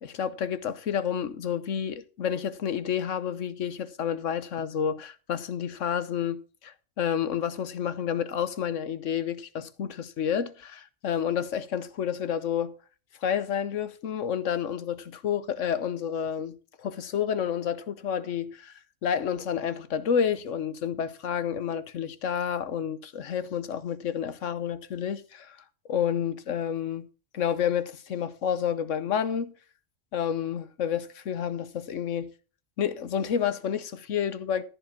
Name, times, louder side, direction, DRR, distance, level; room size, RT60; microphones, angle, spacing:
voice 1, 0.0-12.7 13.2-18.7 19.0-25.6 25.9-27.1 27.3-29.5 30.1-32.3 32.8-34.6, left 8 dB, 85° left, 1.3 m, -30 dB
14.0 x 4.9 x 7.3 m
omnidirectional pair, 1.3 m